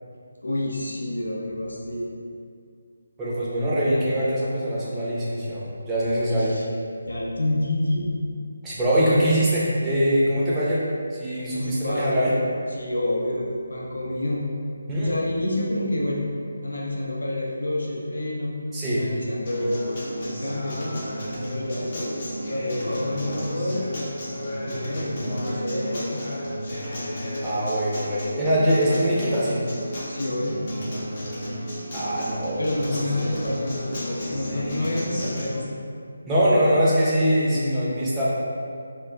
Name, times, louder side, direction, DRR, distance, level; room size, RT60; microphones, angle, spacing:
voice 1, 0.4-2.1 6.3-6.7 7.1-8.1 8.9-9.4 11.5-12.2 12.7-14.5 15.0-16.3 16.6-18.6 18.9-20.9 21.5-22.2 22.5-23.9 24.6-26.2 30.1-30.6 32.6-35.8, left 1 dB, 80° left, -3 dB, 0.5 m, -28 dB
voice 2, 3.2-6.5 8.6-10.8 11.1-12.3 14.9-15.1 18.7-19.0 27.4-29.6 31.9-32.8 33.2-33.5 36.3-38.3, equal, 10° right, -9 dB, 0.5 m, -23 dB
Acoustic guitar, 19.5-35.5, equal, 40° left, 0.6 m, -32 dB
2.3 x 2.2 x 3.6 m, 2.3 s
figure-of-eight pair, 155°, 0 cm